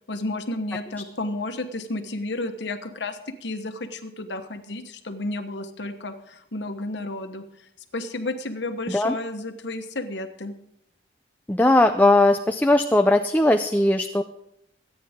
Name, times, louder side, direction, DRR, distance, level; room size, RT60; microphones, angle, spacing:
voice 1, 0.1-7.4 7.9-10.5, left 2 dB, 75° left, 7 dB, 1.2 m, -32 dB
voice 2, 11.5-14.2, left 2 dB, 10° left, 5 dB, 0.4 m, -19 dB
24.0 x 9.4 x 3.6 m, 0.77 s
head